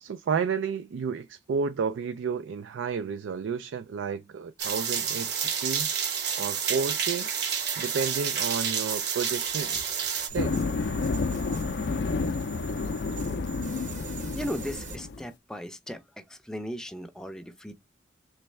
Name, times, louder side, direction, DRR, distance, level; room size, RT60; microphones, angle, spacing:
voice 1, 0.0-5.9 6.4-7.3 7.8-10.0 10.3-10.6, right 6 dB, 90° right, 0.3 m, -31 dB
sound 1, 4.6-10.3, right 7 dB, 60° right, 1.2 m, -29 dB
sound 2, 9.4-15.0, right 5 dB, 40° right, 0.9 m, -43 dB
sound 3, 10.3-15.3, left 4 dB, 65° left, 0.4 m, -30 dB
voice 2, 14.3-16.0 16.3-17.7, equal, 5° left, 0.4 m, -36 dB
3.4 x 3.2 x 3.1 m
head